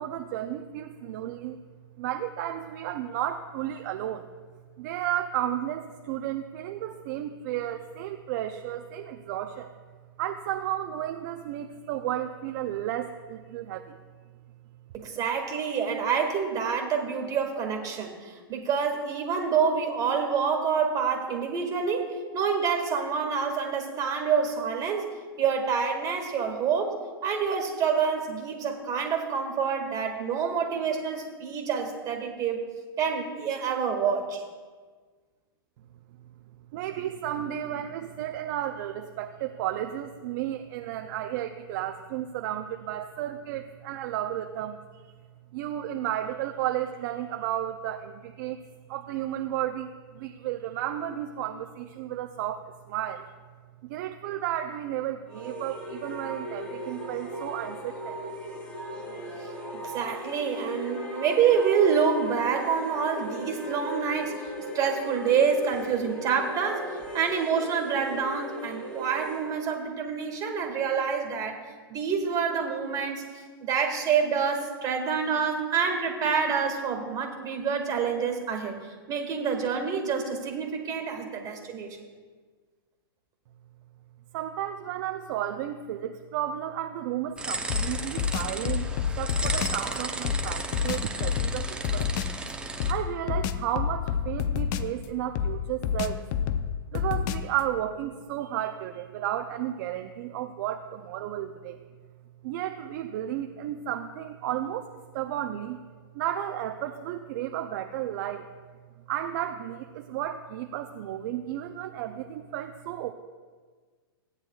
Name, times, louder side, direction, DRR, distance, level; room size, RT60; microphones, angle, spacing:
voice 1, 0.0-1.6 2.0-4.2 4.8-9.8 10.2-14.0 36.7-45.1 45.5-48.6 48.9-53.3 53.8-58.2 59.1-59.2 84.3-92.1 92.9-96.2 96.9-101.8 102.4-105.8 106.1-108.5 109.1-113.1, right 11 dB, 50° right, 7 dB, 0.6 m, -33 dB
voice 2, 14.9-22.1 22.3-25.1 25.4-27.0 27.2-32.6 33.0-34.4 59.4-59.5 59.8-71.6 71.9-73.2 73.6-78.8 79.1-82.0, right 6 dB, 30° right, 3 dB, 2.0 m, -27 dB
sound 1, 55.3-69.5, right 1 dB, 10° left, 2.6 m, -37 dB
sound 2, 87.4-92.9, right 3 dB, 10° right, 0.8 m, -34 dB
sound 3, 87.7-89.8 90.2-92.4 92.8-95.0 95.3-97.6, left 8 dB, 45° left, 0.6 m, -29 dB
16.5 x 9.7 x 2.4 m, 1.5 s
hypercardioid pair, 120°, 13 cm